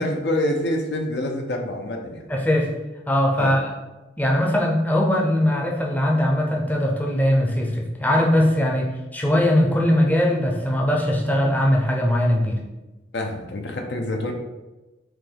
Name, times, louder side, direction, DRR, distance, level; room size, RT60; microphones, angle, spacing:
voice 1, 0.0-2.3 3.4-3.6 13.1-14.3, left 1 dB, 70° left, 3 dB, 0.6 m, -26 dB
voice 2, 2.3-2.7 3.1-3.7 4.2-12.6, left 1 dB, 10° left, -1 dB, 0.6 m, -20 dB
4.5 x 2.9 x 3.9 m, 1.1 s
head